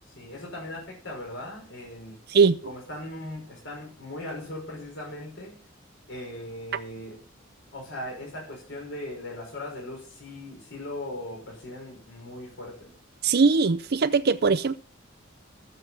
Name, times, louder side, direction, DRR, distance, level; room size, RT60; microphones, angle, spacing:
voice 1, 0.2-2.2 2.6-5.6 6.1-7.2 7.7-12.9, left 1 dB, 65° left, 5.7 m, -39 dB
voice 2, 13.2-14.7, right 4 dB, 50° right, 0.6 m, -20 dB
13.0 x 7.6 x 5.7 m
head